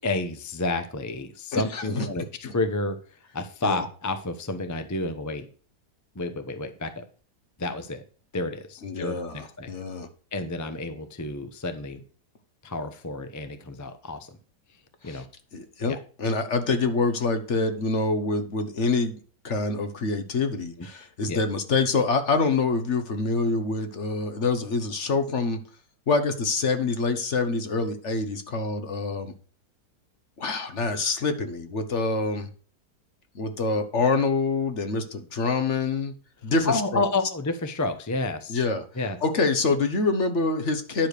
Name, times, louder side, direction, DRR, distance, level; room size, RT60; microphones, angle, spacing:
voice 1, 0.0-5.5 6.1-7.0 7.6-8.0 8.3-9.7 10.3-12.0 12.6-14.3 15.0-15.2 15.9-16.0 20.8-20.9 21.3-21.4 36.6-38.6 39.0-39.2, left 2 dB, 20° left, 8 dB, 0.5 m, -30 dB
voice 2, 1.5-2.1 2.4-2.5 3.6-3.8 8.8-10.1 15.0-15.2 15.5-19.2 19.4-25.6 26.1-29.3 30.4-32.5 33.3-36.1 36.4-37.0 38.5-38.8 39.2-41.1, left 3 dB, 50° left, 8 dB, 1.3 m, -26 dB
10.5 x 5.0 x 6.6 m, 0.40 s
omnidirectional pair, 1.8 m